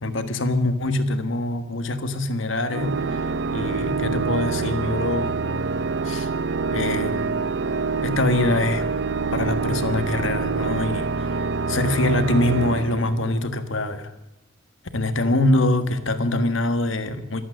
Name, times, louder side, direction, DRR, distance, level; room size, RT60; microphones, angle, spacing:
voice 1, 0.0-3.2 3.5-5.3 6.0-6.3 6.7-7.2 8.0-8.8 9.3-11.4 11.7-14.1 14.9-17.4, left 2 dB, 70° left, 1.6 m, -24 dB
Organ, 2.7-13.6, right 4 dB, 60° right, 0.7 m, -26 dB
25.0 x 9.1 x 6.4 m
head